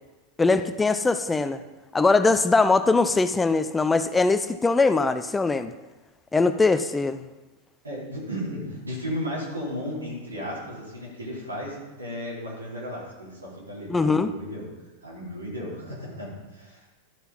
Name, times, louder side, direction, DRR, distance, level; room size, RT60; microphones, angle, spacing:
voice 1, 0.4-1.6 1.9-5.7 6.3-7.2 13.9-14.3, left 3 dB, 10° left, 11 dB, 0.4 m, -21 dB
voice 2, 7.8-14.7 15.0-17.0, equal, 80° right, -5 dB, 4.1 m, -34 dB
12.5 x 6.8 x 4.3 m, 1.1 s
figure-of-eight pair, 90°, 0 cm